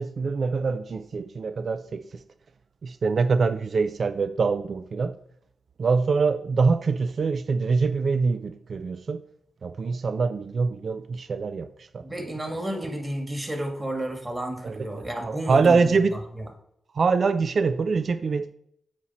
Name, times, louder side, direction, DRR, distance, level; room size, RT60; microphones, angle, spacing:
voice 1, 0.0-2.2 2.8-5.1 5.8-9.2 9.6-12.3 14.6-16.1 16.9-18.5, right 4 dB, 60° right, 0.3 m, -24 dB
voice 2, 12.0-16.0 16.4-16.5, right 1 dB, 25° right, 1.8 m, -31 dB
8.6 x 3.0 x 4.2 m
supercardioid pair, 40°, 0 cm